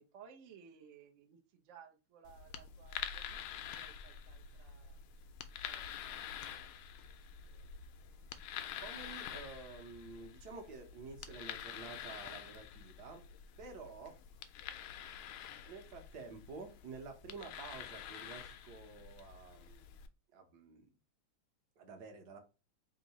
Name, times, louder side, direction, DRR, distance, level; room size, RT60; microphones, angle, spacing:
voice 1, 0.0-5.0 5.6-6.3 6.6-6.9, right 7 dB, 75° right, 3 dB, 0.7 m, -59 dB
sound 1, 2.2-20.1, left 9 dB, 80° left, 1.4 m, -47 dB
voice 2, 8.8-13.2 13.6-14.2 15.7-19.9 20.3-20.9 21.8-22.4, right 4 dB, 60° right, 4 dB, 1.3 m, -50 dB
3.7 x 2.6 x 4.1 m, 0.31 s
omnidirectional pair, 2.2 m